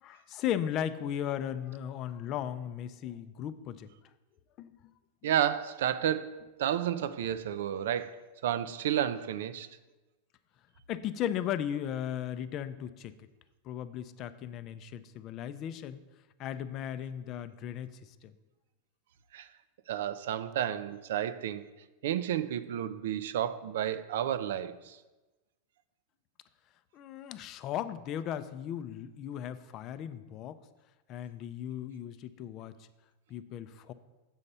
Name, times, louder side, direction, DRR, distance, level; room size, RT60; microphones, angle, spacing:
voice 1, 0.0-3.9 4.6-4.7 10.9-13.1 13.6-16.0 16.4-18.3 26.9-30.6 31.1-32.8 33.3-33.9, left 10 dB, 40° left, 0.4 m, -36 dB
voice 2, 5.2-9.7 19.3-19.5 19.9-21.6 22.0-25.0, right 10 dB, 75° right, 0.4 m, -31 dB
7.2 x 4.2 x 6.6 m
supercardioid pair, 130°, 0 cm